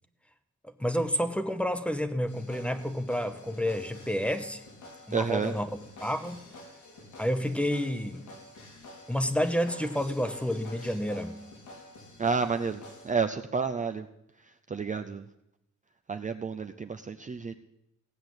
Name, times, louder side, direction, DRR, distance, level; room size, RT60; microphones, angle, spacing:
voice 1, 0.8-4.6 5.1-5.7 6.0-6.4 7.2-8.2 9.1-11.4, equal, 5° left, 10 dB, 0.9 m, -29 dB
sound 1, 2.3-13.1, left 1 dB, 90° left, 4.3 m, -49 dB
voice 2, 5.1-5.5 12.2-14.1 14.4-15.2 16.1-17.5, right 5 dB, 25° right, 7 dB, 0.5 m, -30 dB
16.5 x 8.7 x 7.9 m, 0.86 s
wide cardioid pair, 155°, 29 cm